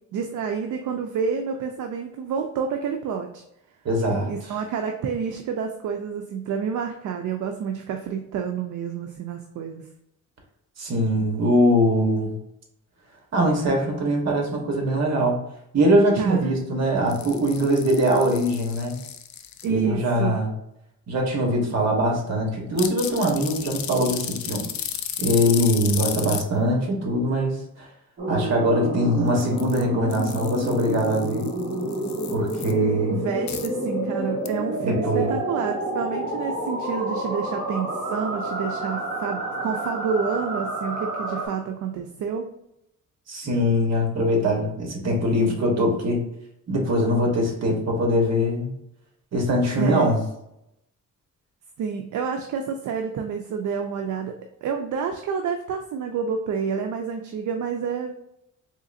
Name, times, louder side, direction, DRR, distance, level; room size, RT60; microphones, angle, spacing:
voice 1, 0.1-3.4 4.3-9.8 16.2-16.6 19.6-20.4 33.1-42.5 49.8-50.2 51.8-58.1, right 6 dB, 75° right, 4 dB, 0.5 m, -29 dB
voice 2, 3.8-4.3 10.8-12.4 13.3-15.4 15.7-19.0 19.6-20.5 21.1-24.7 25.2-27.5 27.8-27.9 28.3-31.5 32.3-33.2 34.8-35.4 43.3-46.2 46.7-48.7 49.3-50.2, equal, 60° right, 0 dB, 1.2 m, -22 dB
sound 1, 17.1-19.7 22.8-26.4 29.3-29.8 30.1-32.7 33.5-33.7 34.5-34.6, left 10 dB, 65° left, 0.5 m, -34 dB
sound 2, 28.2-41.5, right 1 dB, 30° right, 1.4 m, -29 dB
3.8 x 3.1 x 2.6 m, 0.80 s
cardioid pair, 130°, 30 cm